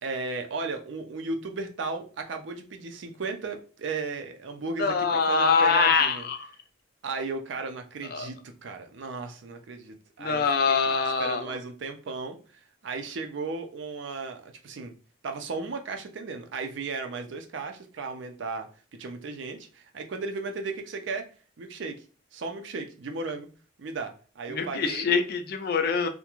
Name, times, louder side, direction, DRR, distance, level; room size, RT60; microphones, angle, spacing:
voice 1, 0.0-6.3 7.0-10.9 11.2-12.4 12.8-14.9 15.2-21.3 21.6-22.0 22.3-23.5 23.8-25.1, right 3 dB, 70° right, 6 dB, 0.5 m, -35 dB
voice 2, 4.8-6.5 8.1-8.3 10.2-11.5 24.5-26.1, left 5 dB, 50° left, 7 dB, 0.4 m, -24 dB
2.4 x 2.1 x 2.9 m, 0.37 s
head